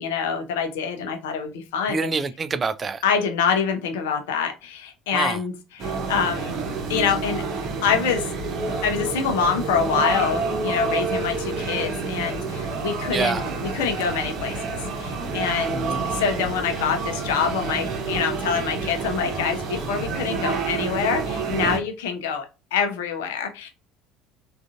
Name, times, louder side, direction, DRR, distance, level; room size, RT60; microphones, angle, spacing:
voice 1, 0.0-2.1 3.0-6.6 6.9-7.4 7.8-8.3 8.8-23.7, left 6 dB, 65° left, 0.6 m, -26 dB
voice 2, 1.9-3.0 5.1-5.4 13.1-13.4 15.7-16.1, right 4 dB, 30° right, 0.3 m, -26 dB
sound 1, 5.8-21.8, right 4 dB, 45° right, 0.9 m, -28 dB
3.6 x 2.5 x 2.3 m
figure-of-eight pair, 60°, 0 cm